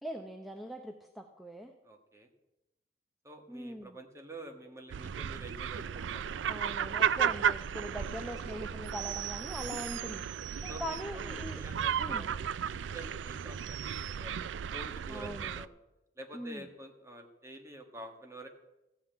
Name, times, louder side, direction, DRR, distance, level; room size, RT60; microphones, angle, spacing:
voice 1, 0.0-1.7 3.5-4.0 6.5-11.6 12.0-12.3 15.1-15.6 16.3-16.7, equal, ahead, 4 dB, 0.7 m, -42 dB
voice 2, 1.8-2.3 3.2-6.2 7.9-8.5 10.7-12.4 12.7-13.8 14.1-14.4 14.7-15.7 16.2-18.5, right 1 dB, 15° right, 4 dB, 1.4 m, -48 dB
sound 1, 4.9-15.7, right 8 dB, 80° right, 0.4 m, -34 dB
14.5 x 5.8 x 8.8 m, 0.97 s
head